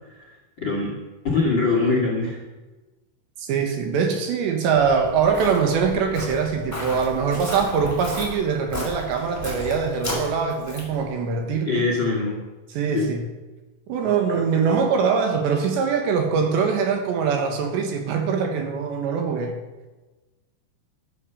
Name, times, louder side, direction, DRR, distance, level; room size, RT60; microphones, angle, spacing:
voice 1, 0.6-0.9 1.3-2.4 11.7-12.4 12.9-13.1, left 3 dB, 40° left, -1 dB, 1.8 m, -22 dB
voice 2, 3.4-11.9 12.7-13.3 13.9-19.6, right 6 dB, 70° right, 4 dB, 3.4 m, -23 dB
Walk footsteps, 4.8-11.0, left 1 dB, 5° left, 4.6 m, -34 dB
13.0 x 12.0 x 7.0 m, 1.2 s
omnidirectional pair, 5.7 m